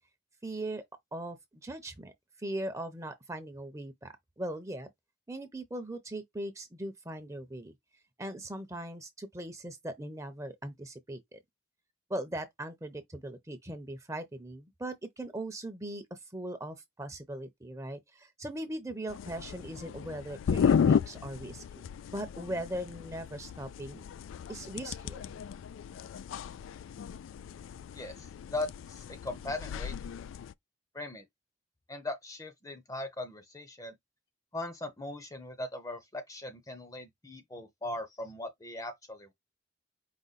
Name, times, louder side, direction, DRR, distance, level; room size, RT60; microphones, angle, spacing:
voice 1, 0.4-0.8 1.1-1.4 1.6-2.1 2.4-4.9 5.3-7.7 8.2-11.4 12.1-21.6 22.1-24.0 24.5-25.3, right 1 dB, 15° right, 0.7 m, -39 dB
sound 1, 19.1-30.5, left 7 dB, 90° left, 0.3 m, -34 dB
voice 2, 28.5-30.2 30.9-31.2 31.9-34.0 34.5-39.3, left 2 dB, 20° left, 0.7 m, -39 dB
5.0 x 2.2 x 4.1 m
head